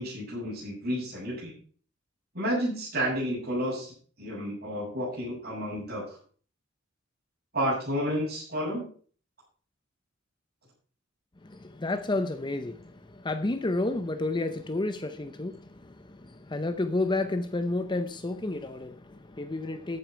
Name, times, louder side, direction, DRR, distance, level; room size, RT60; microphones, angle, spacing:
voice 1, 0.0-1.5 2.3-6.2 7.5-8.9, equal, 50° right, 7.1 m, -31 dB
voice 2, 11.4-20.0, left 2 dB, 25° left, 0.7 m, -31 dB
14.0 x 8.7 x 4.5 m
head